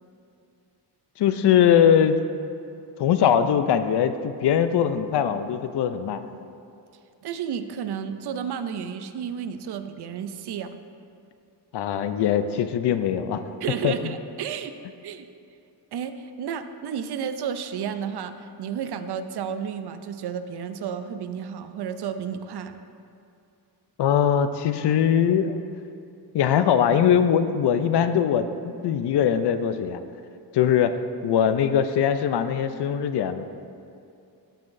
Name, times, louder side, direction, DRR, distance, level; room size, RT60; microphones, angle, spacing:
voice 1, 1.2-2.2 3.0-6.2 11.7-13.4 13.8-14.1 24.0-25.6 26.3-30.0 30.5-33.4, left 8 dB, 70° left, 10 dB, 0.5 m, -21 dB
voice 2, 7.2-10.7 13.6-14.7 15.0-15.3 15.9-22.8, right 7 dB, 65° right, 10 dB, 0.5 m, -32 dB
13.5 x 5.7 x 2.6 m, 2.6 s
wide cardioid pair, 145°, 43 cm